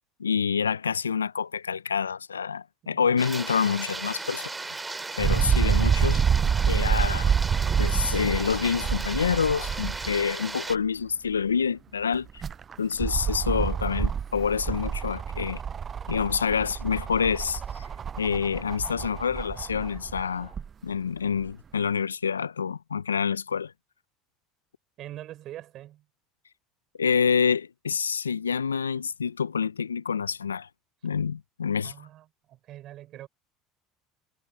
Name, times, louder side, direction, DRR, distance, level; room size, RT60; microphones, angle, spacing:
voice 1, 0.2-4.5 5.2-6.4 6.7-7.3 7.8-12.4 12.8-15.6 16.1-17.9 18.2-20.5 20.8-23.7 27.0-30.7 31.0-31.9, left 6 dB, 90° left, 0.6 m, -27 dB
voice 2, 2.8-3.2 25.0-26.1 31.8-33.3, right 13 dB, 50° right, 5.4 m, -43 dB
sound 1, 3.2-10.8, right 3 dB, 15° right, 2.8 m, -36 dB
sound 2, 5.2-10.2 10.7-10.8 12.1-20.7 21.4-21.5, right 7 dB, 35° right, 0.5 m, -27 dB
hypercardioid pair, 70°, 0 cm